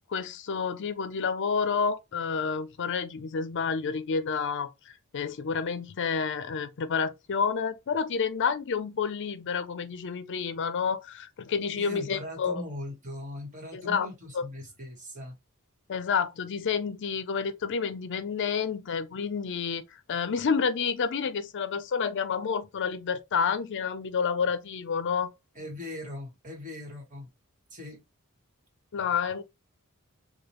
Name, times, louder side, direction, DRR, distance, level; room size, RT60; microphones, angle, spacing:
voice 1, 0.1-12.6 13.7-14.1 14.3-14.5 15.9-25.3 28.9-29.4, left 6 dB, 55° left, 0.5 m, -29 dB
voice 2, 11.7-15.4 25.5-27.3 27.7-28.0, left 1 dB, 35° right, 1.6 m, -40 dB
4.8 x 2.3 x 3.0 m
head